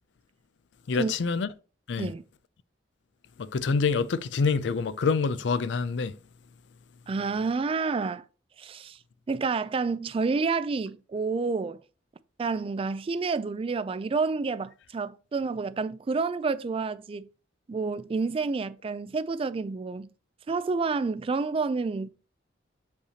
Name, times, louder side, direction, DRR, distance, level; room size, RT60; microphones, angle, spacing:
voice 1, 0.9-1.5 1.9-2.1 3.4-6.1, left 4 dB, 70° left, 0.4 m, -26 dB
voice 2, 7.1-8.2 8.6-9.0 9.3-11.8 12.4-17.3 17.7-20.1 20.5-22.1, right 4 dB, 30° right, 0.3 m, -29 dB
6.5 x 5.4 x 2.8 m
head